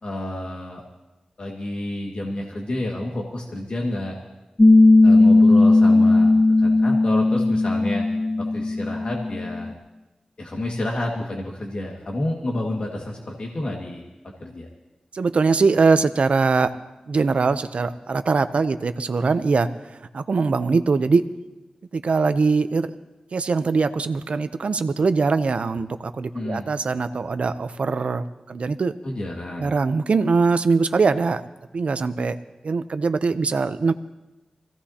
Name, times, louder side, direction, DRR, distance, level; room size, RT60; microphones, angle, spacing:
voice 1, 0.0-0.8 1.4-4.2 5.0-8.1 8.4-9.7 10.4-14.0 14.4-14.7 26.3-26.7 29.0-29.7, left 1 dB, 55° left, -1 dB, 1.9 m, -30 dB
Piano, 4.6-9.7, left 2 dB, 30° left, 1.5 m, -16 dB
voice 2, 15.1-16.7 17.1-21.2 21.9-22.9 23.3-28.9 29.6-31.4 31.7-32.4 32.6-33.9, right 4 dB, 70° right, 11 dB, 0.6 m, -22 dB
24.0 x 16.5 x 2.9 m, 1.0 s
wide cardioid pair, 95°, 2 cm